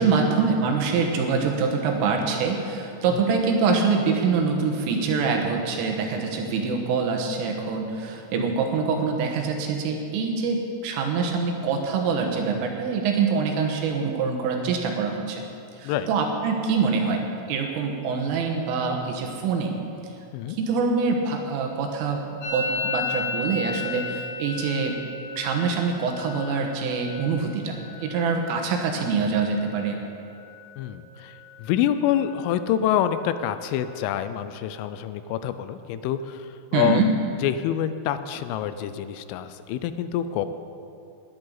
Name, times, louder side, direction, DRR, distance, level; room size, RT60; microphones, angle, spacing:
voice 1, 0.0-15.4 15.8-19.8 20.5-25.0 25.4-30.0 36.7-37.1, right 5 dB, 85° right, 2 dB, 3.9 m, -25 dB
Musical instrument, 22.4-30.1 30.3-30.9 31.2-31.7 32.0-34.0, left 4 dB, 45° left, 4.9 m, -36 dB
voice 2, 30.8-37.0 37.4-40.5, left 10 dB, 85° left, 11 dB, 3.2 m, -27 dB
20.5 x 10.5 x 4.0 m, 2.6 s
omnidirectional pair, 5.7 m